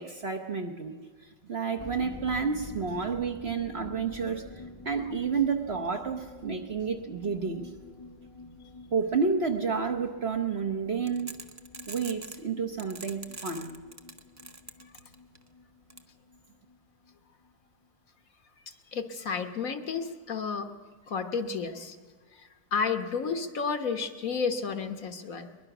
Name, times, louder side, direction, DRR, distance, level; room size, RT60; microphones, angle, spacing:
voice 1, 0.0-4.4 4.8-7.7 8.9-11.3 11.9-13.7, right 5 dB, 45° right, 3 dB, 1.1 m, -30 dB
sound 1, 1.8-17.2 17.4-17.5 17.8-17.9, left 2 dB, 25° left, 0.9 m, -48 dB
sound 2, 11.1-12.4 12.8-15.4 15.9-16.0, right 2 dB, 20° right, 0.4 m, -43 dB
voice 2, 18.9-20.7 21.1-22.0 22.4-25.7, left 5 dB, 55° left, 8 dB, 1.4 m, -32 dB
22.5 x 21.0 x 6.0 m, 1.5 s
omnidirectional pair, 1.8 m